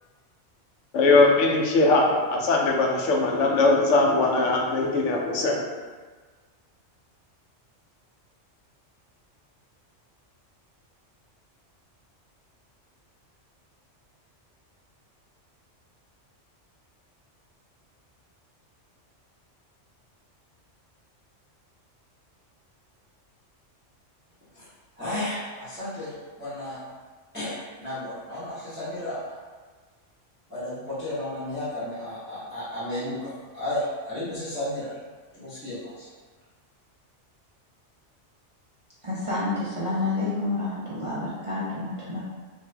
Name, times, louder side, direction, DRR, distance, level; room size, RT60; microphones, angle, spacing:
voice 1, 0.9-5.6, left 3 dB, 80° left, -1 dB, 0.9 m, -20 dB
voice 2, 25.0-26.1 26.4-26.8 27.3-29.3 30.5-34.9 35.3-36.1, left 1 dB, 10° right, -15 dB, 0.9 m, -33 dB
voice 3, 39.0-42.2, left 2 dB, 40° right, -9 dB, 0.5 m, -29 dB
2.6 x 2.5 x 3.2 m, 1.4 s
omnidirectional pair, 1.3 m